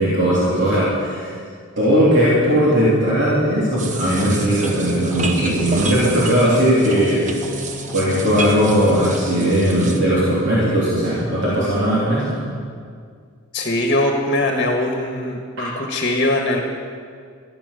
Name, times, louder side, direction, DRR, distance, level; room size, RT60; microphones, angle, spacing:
voice 1, 0.0-1.4 1.8-7.3 7.9-12.4 15.6-15.7, equal, 60° right, -8 dB, 3.3 m, -18 dB
sound 1, 1.9-10.9, left 2 dB, 10° left, 2.9 m, -32 dB
sound 2, 3.8-10.0, right 3 dB, 35° right, 1.1 m, -30 dB
voice 2, 13.5-16.6, left 1 dB, 45° left, 2 dB, 1.4 m, -21 dB
14.5 x 10.0 x 6.9 m, 2.1 s
head